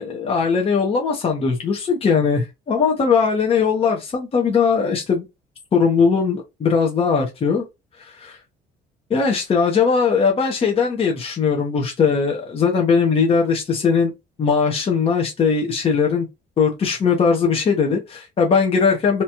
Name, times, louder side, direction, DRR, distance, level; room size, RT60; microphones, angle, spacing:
voice 1, 0.0-5.2 5.7-7.6 8.0-8.4 9.1-14.1 14.4-16.3 16.6-19.2, left 5 dB, 35° left, 0.9 m, -19 dB
3.0 x 2.3 x 2.8 m
cardioid pair, 110°, 17 cm